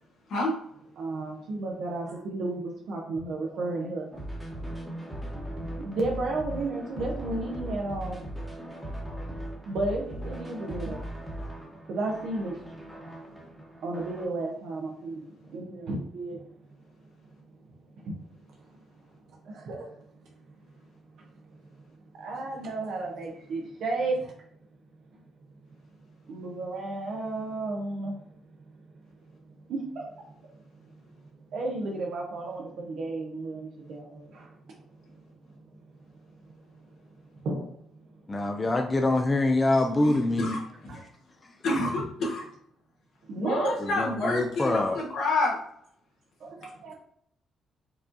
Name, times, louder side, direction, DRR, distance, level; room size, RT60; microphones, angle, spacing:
voice 1, 1.0-4.2 5.7-8.2 9.7-11.0 11.9-12.6 13.8-16.4 18.0-18.2 19.4-19.9 21.2-21.3 22.1-24.3 26.3-28.2 29.5-30.1 31.5-34.5 37.4-38.0 40.9-41.0 43.3-43.7 46.4-46.9, right 2 dB, 75° right, 0 dB, 0.7 m, -33 dB
sound 1, 4.1-14.3, right 1 dB, ahead, 1.1 m, -38 dB
voice 2, 38.3-40.6 43.8-45.0, left 2 dB, 25° left, 4 dB, 0.4 m, -25 dB
voice 3, 40.0-40.6 40.8-40.9 41.6-42.4 43.4-45.6, left 2 dB, 75° left, -2 dB, 1.3 m, -28 dB
4.7 x 2.4 x 2.6 m, 0.68 s
cardioid pair, 90°, 0 cm